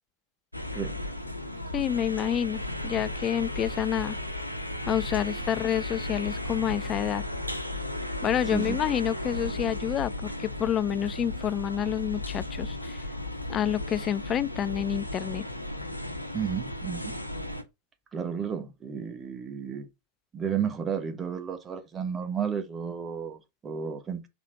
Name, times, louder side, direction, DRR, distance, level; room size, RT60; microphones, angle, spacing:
sound 1, 0.5-17.6, left 1 dB, 85° left, 0.9 m, -35 dB
voice 1, 1.7-4.2 4.9-7.2 8.2-13.0 13.5-15.4, left 10 dB, 30° left, 0.3 m, -28 dB
voice 2, 8.5-8.8 16.3-17.2 18.1-19.9 20.3-24.3, right 7 dB, 20° right, 1.3 m, -32 dB
6.0 x 4.2 x 4.5 m
figure-of-eight pair, 90°, 0 cm